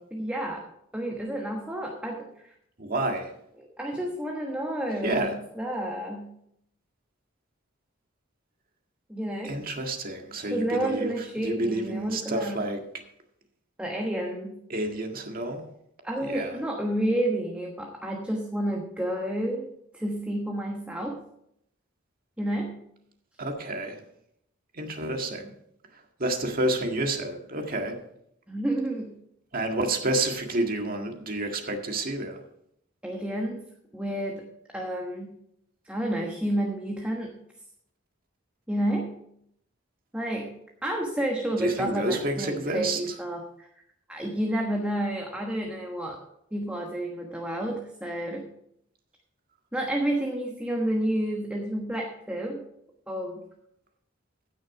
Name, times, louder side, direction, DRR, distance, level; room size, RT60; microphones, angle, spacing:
voice 1, 0.1-0.7 0.9-2.3 3.6-6.3 9.1-9.6 10.5-12.8 13.8-14.6 16.0-19.7 19.9-21.2 22.4-22.8 28.5-29.1 33.0-33.6 33.9-34.4 34.7-35.4 35.9-37.4 38.7-39.1 40.1-40.5 40.8-43.7 44.1-46.2 46.5-48.5 49.7-52.6 53.1-53.4, right 1 dB, 5° right, 0 dB, 1.2 m, -30 dB
voice 2, 2.8-3.3 5.0-5.4 9.4-12.8 14.7-15.6 16.2-16.6 23.4-24.0 24.7-25.5 26.2-28.0 29.5-32.4 41.6-43.1, right 2 dB, 45° right, 3 dB, 1.8 m, -29 dB
16.0 x 6.4 x 4.8 m, 0.75 s
head